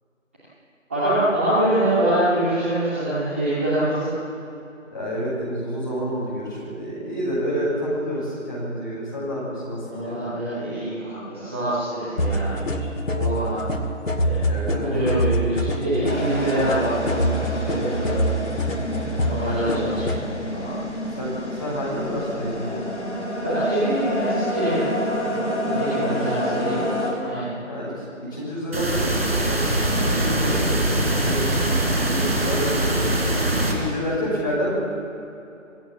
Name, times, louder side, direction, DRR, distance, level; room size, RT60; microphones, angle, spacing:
voice 1, 0.9-4.1 9.8-12.5 13.1-13.6 14.2-14.4 14.8-18.2 19.1-20.7 23.4-26.8 27.2-27.5 33.4-33.7, right 1 dB, 10° right, -14 dB, 2.7 m, -25 dB
voice 2, 4.9-10.2 14.5-14.9 19.4-19.8 21.2-22.8 26.0-26.6 27.7-33.0 33.5-34.8, equal, 15° left, -8 dB, 6.5 m, -29 dB
sound 1, 12.2-20.2, equal, 80° left, 2.3 m, -25 dB
sound 2, 16.1-27.1, left 1 dB, 55° left, 7.4 m, -28 dB
sound 3, 28.7-33.7, right 1 dB, 50° right, 4.6 m, -22 dB
27.0 x 16.0 x 7.3 m, 2.8 s
figure-of-eight pair, 175°, 39 cm